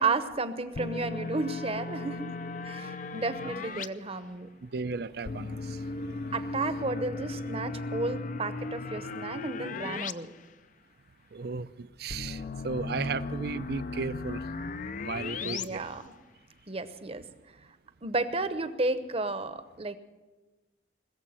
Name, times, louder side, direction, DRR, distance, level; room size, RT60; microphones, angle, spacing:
voice 1, 0.0-2.4 2.6-4.5 6.1-10.3 15.4-16.1 16.7-17.2 18.0-20.0, right 3 dB, 35° right, 11 dB, 0.9 m, -32 dB
sound 1, 0.7-3.9 5.2-10.1 10.4-10.5 12.1-15.6, left 3 dB, 50° left, 0.5 m, -36 dB
voice 2, 4.6-5.8 11.3-14.5 15.0-15.9, right 4 dB, 60° right, 15 dB, 0.5 m, -35 dB
20.5 x 7.3 x 8.8 m, 1.2 s
head